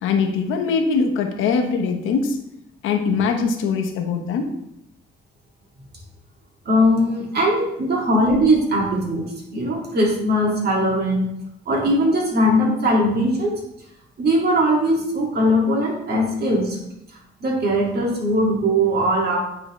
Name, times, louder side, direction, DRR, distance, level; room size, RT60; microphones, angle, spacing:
voice 1, 0.0-2.4 2.8-4.5, left 5 dB, 85° left, 4 dB, 1.0 m, -22 dB
voice 2, 6.7-11.3 11.7-13.6 14.2-16.8 17.4-19.4, equal, 55° right, -2 dB, 2.0 m, -20 dB
8.8 x 3.9 x 3.1 m, 0.81 s
cardioid pair, 90°, 20 cm